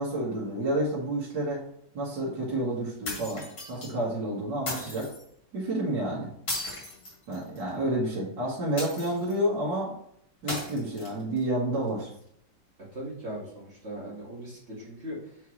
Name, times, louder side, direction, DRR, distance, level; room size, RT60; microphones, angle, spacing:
voice 1, 0.0-1.6 1.9-5.1 5.5-6.3 7.3-9.9 10.4-12.1, right 1 dB, 70° right, -6 dB, 2.4 m, -30 dB
sound 1, 3.0-3.9 4.7-5.2 6.5-7.7 8.8-9.4 10.5-11.4, left 2 dB, 55° left, 2.9 m, -36 dB
voice 2, 12.9-15.2, equal, 35° right, -6 dB, 2.3 m, -39 dB
7.1 x 5.8 x 3.2 m, 0.69 s
omnidirectional pair, 2.0 m